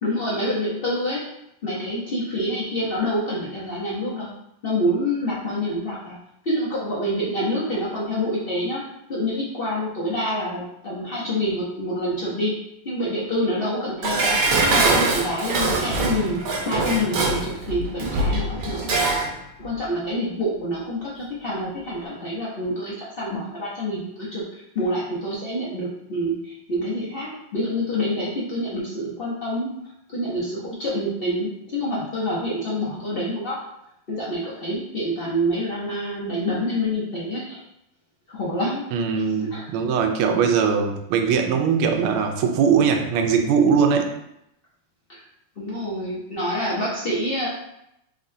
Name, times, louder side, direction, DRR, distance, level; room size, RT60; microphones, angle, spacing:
voice 1, 0.0-1.2 1.6-4.3 4.6-6.1 6.4-8.8 9.1-12.5 12.8-14.4 14.7-19.0 19.6-29.7 30.1-33.6 34.1-37.6 38.3-38.8 39.5-39.7 45.1-45.2 45.6-47.5, equal, 65° left, -8 dB, 0.5 m, -27 dB
Dishes pots and pans, 14.0-19.3 19.6-19.7, right 2 dB, 65° right, 1.2 m, -23 dB
voice 2, 38.9-44.1, right 6 dB, 80° right, 4 dB, 1.5 m, -20 dB
3.9 x 3.7 x 2.7 m, 0.81 s
omnidirectional pair, 2.4 m